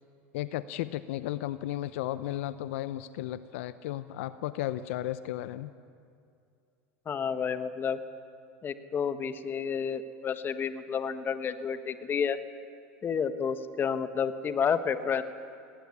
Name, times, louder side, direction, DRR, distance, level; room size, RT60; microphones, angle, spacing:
voice 1, 0.3-5.7, left 14 dB, 75° left, 14 dB, 0.7 m, -34 dB
voice 2, 7.1-8.0 8.6-12.4 13.0-15.2, left 7 dB, 30° left, 11 dB, 1.3 m, -30 dB
18.5 x 18.0 x 9.8 m, 2.4 s
supercardioid pair, 105°, 7 cm